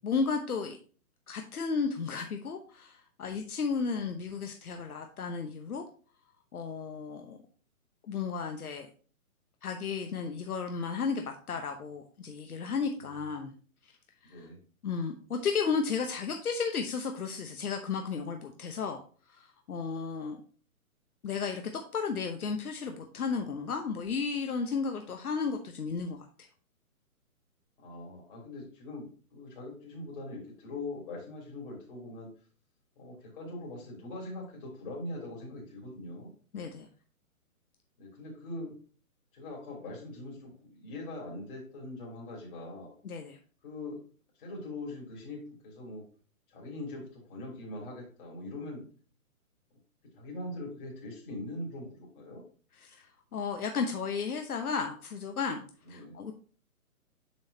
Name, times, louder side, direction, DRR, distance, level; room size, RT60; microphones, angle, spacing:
voice 1, 0.0-0.8 1.3-5.8 6.5-7.4 8.1-8.9 9.6-13.5 14.2-14.5 14.8-19.0 19.3-20.4 21.2-26.5 36.5-36.9 43.0-43.4 52.8-56.3, left 5 dB, 80° left, 4 dB, 1.0 m, -34 dB
voice 2, 13.0-13.3 14.2-14.6 27.8-32.3 32.9-36.3 38.0-38.7 39.3-43.0 43.6-44.0 44.4-46.0 46.5-48.8 50.1-52.4 55.8-56.2, left 2 dB, 35° left, -2 dB, 3.3 m, -42 dB
6.4 x 6.3 x 2.8 m, 0.40 s
hypercardioid pair, 155°, 44 cm